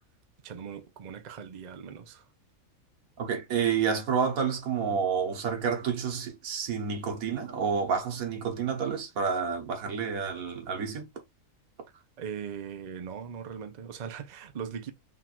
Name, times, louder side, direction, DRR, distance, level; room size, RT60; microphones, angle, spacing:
voice 1, 0.4-2.2 12.2-14.9, right 7 dB, 45° right, 0.6 m, -39 dB
voice 2, 3.2-11.1, right 6 dB, 85° right, 1.5 m, -29 dB
3.8 x 2.4 x 4.3 m
omnidirectional pair, 1.4 m